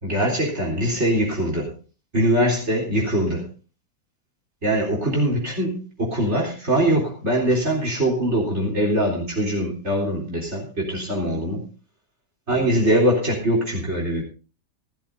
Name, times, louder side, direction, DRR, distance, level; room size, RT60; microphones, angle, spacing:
voice 1, 0.0-1.7 2.1-3.5 4.6-11.6 12.5-14.2, right 1 dB, 40° right, 0 dB, 4.1 m, -22 dB
19.0 x 13.0 x 2.7 m, 0.34 s
omnidirectional pair, 1.7 m